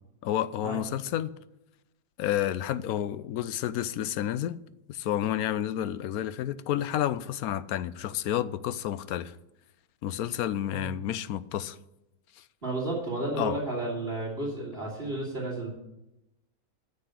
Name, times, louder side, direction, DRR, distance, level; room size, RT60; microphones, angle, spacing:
voice 1, 0.2-1.3 2.2-4.6 4.9-9.4 10.0-11.8 12.4-12.5 13.4-13.6, left 11 dB, 75° left, 1.0 m, -30 dB
voice 2, 12.6-15.7, right 2 dB, 40° right, 3.1 m, -32 dB
9.6 x 6.7 x 8.0 m
omnidirectional pair, 1.6 m